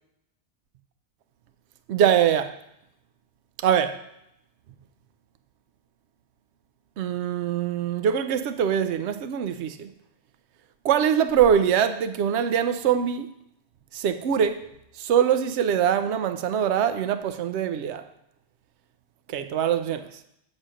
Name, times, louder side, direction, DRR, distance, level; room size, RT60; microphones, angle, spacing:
voice 1, 1.9-2.5 3.6-4.0 7.0-9.9 10.8-13.3 13.9-14.7 15.0-18.0 19.3-20.1, right 8 dB, 75° right, 0.9 m, -23 dB
8.0 x 4.2 x 6.3 m
omnidirectional pair, 1.2 m